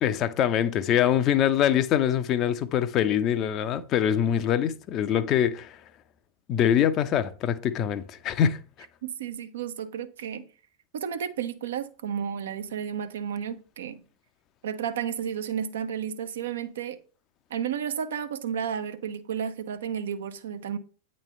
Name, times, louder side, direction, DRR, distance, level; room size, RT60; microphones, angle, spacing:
voice 1, 0.0-5.8 6.5-8.6, left 9 dB, 35° left, 0.6 m, -24 dB
voice 2, 9.0-10.5 10.9-14.0 14.6-17.0 17.5-20.8, right 8 dB, 60° right, 0.7 m, -32 dB
8.9 x 3.2 x 5.5 m
figure-of-eight pair, 90°, 0 cm